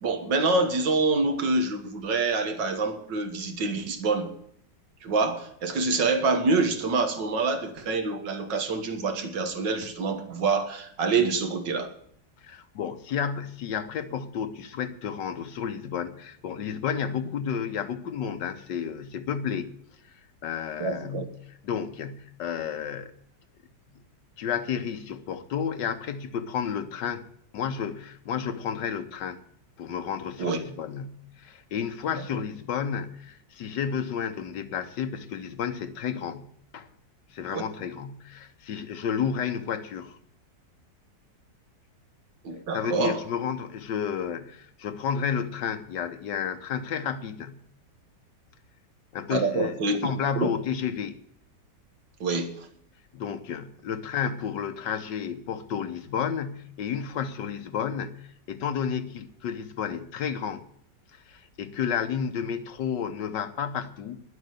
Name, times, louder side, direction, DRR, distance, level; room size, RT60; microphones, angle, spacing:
voice 1, 0.0-4.3 5.0-11.9 20.8-21.3 30.4-30.6 37.5-37.6 42.4-43.2 49.3-50.1 50.4-50.5 52.2-52.7, right 3 dB, 85° right, 2.1 m, -26 dB
voice 2, 12.4-19.7 20.1-23.1 24.4-27.2 27.5-29.4 29.8-36.5 36.7-36.9 37.3-40.2 42.7-47.6 49.1-49.8 50.0-51.2 53.1-60.6 61.1-64.2, left 7 dB, 85° left, 1.6 m, -31 dB
11.0 x 8.0 x 9.5 m
omnidirectional pair, 1.9 m